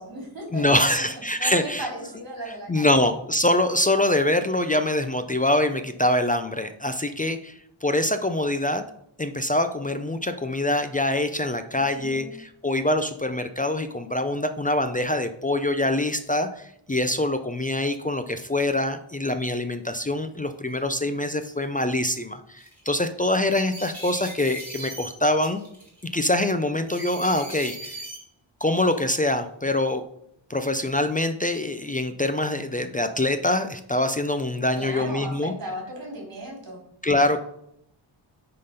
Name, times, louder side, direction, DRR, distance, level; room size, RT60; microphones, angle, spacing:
voice 1, 0.0-0.6 1.4-2.9 11.7-12.3 34.8-36.8, right 1 dB, 50° right, 0 dB, 3.3 m, -36 dB
voice 2, 0.5-1.9 2.7-8.8 9.2-25.6 26.1-28.0 28.6-30.0 30.5-35.5 37.0-37.4, left 1 dB, 20° left, 8 dB, 0.4 m, -24 dB
sound 1, 20.0-20.1 20.7-21.2 22.1-22.2 22.6-22.8 23.5-25.1 25.4-26.0 26.9-28.2 28.7-29.2, right 1 dB, 5° left, 3.0 m, -39 dB
9.6 x 3.8 x 5.1 m, 0.74 s
wide cardioid pair, 165°, 46 cm